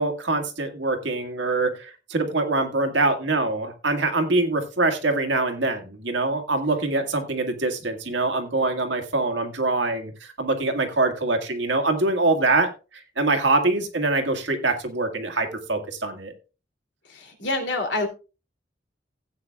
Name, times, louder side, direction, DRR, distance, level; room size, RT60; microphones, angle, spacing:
voice 1, 0.0-12.7 13.2-16.3, right 2 dB, 75° right, 5 dB, 1.8 m, -24 dB
voice 2, 17.0-18.1, left 2 dB, 70° left, 4 dB, 2.8 m, -27 dB
16.5 x 8.6 x 2.3 m, 0.32 s
head